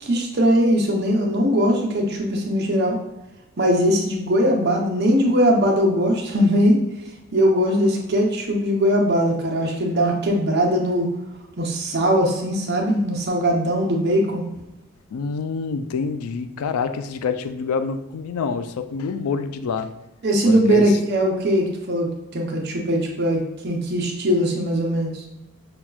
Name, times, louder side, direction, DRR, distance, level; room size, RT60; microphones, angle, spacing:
voice 1, 0.0-3.0 3.6-6.8 7.3-11.1 11.6-14.4 20.2-22.1 22.3-25.2, equal, 50° right, 0 dB, 0.7 m, -20 dB
voice 2, 15.1-19.9 20.5-21.0, left 5 dB, 80° left, 9 dB, 0.3 m, -27 dB
5.8 x 2.3 x 2.3 m, 0.95 s
head